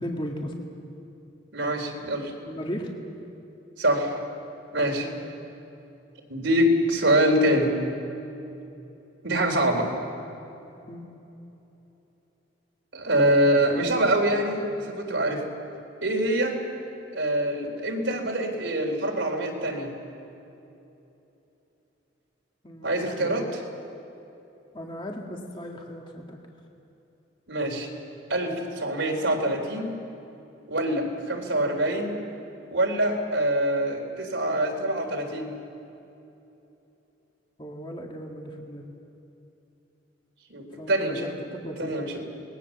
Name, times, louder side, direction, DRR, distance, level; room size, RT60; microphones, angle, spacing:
voice 1, 0.0-0.5 2.5-2.9 5.0-5.2 10.9-11.0 22.6-23.3 24.7-26.4 37.6-38.9 40.8-41.3 41.5-42.0, equal, 25° left, 1 dB, 2.0 m, -36 dB
voice 2, 1.5-2.3 3.8-4.1 4.7-5.1 6.3-7.8 9.2-9.9 12.9-15.4 16.0-16.6 17.1-19.9 22.8-23.5 27.5-27.9 28.3-29.9 30.7-32.2 32.7-35.5 40.5-41.3 41.8-42.2, right 1 dB, 75° right, 2 dB, 3.5 m, -24 dB
26.0 x 20.5 x 7.2 m, 2.9 s
head